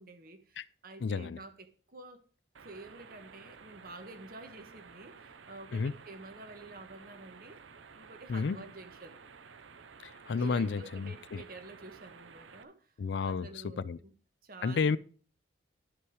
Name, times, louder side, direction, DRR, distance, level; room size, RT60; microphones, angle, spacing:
voice 1, 0.0-2.2 2.6-7.6 7.9-9.2 10.4-12.9 13.2-14.1 14.4-15.0, right 2 dB, 50° right, 1.2 m, -49 dB
voice 2, 1.0-1.4 5.7-5.9 8.3-8.6 10.0-11.4 13.0-14.0 14.6-15.0, left 5 dB, 70° left, 0.4 m, -31 dB
sound 1, 2.5-12.6, right 5 dB, 90° right, 0.7 m, -53 dB
11.5 x 5.5 x 4.8 m
head